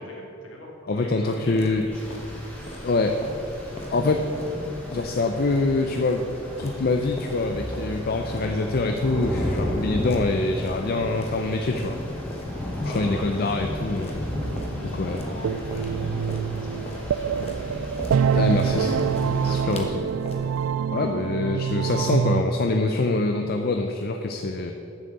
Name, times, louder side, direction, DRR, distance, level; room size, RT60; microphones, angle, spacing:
voice 1, 0.0-2.1 10.8-11.0 12.8-13.3 14.8-17.5 18.6-18.9 19.4-19.8, left 1 dB, 65° left, -3 dB, 2.3 m, -41 dB
voice 2, 0.9-1.9 2.8-3.2 3.9-4.3 4.9-6.2 6.6-11.9 12.8-14.2 14.8-15.2 18.3-20.0 20.9-24.7, left 3 dB, 50° left, 5 dB, 0.5 m, -25 dB
sound 1, 1.3-20.7, equal, 30° left, 1.2 m, -41 dB
Rain, 1.9-19.6, left 1 dB, 10° left, 2.0 m, -33 dB
sound 2, 14.3-22.4, right 7 dB, 85° right, 0.3 m, -26 dB
7.2 x 6.6 x 7.8 m, 2.9 s
head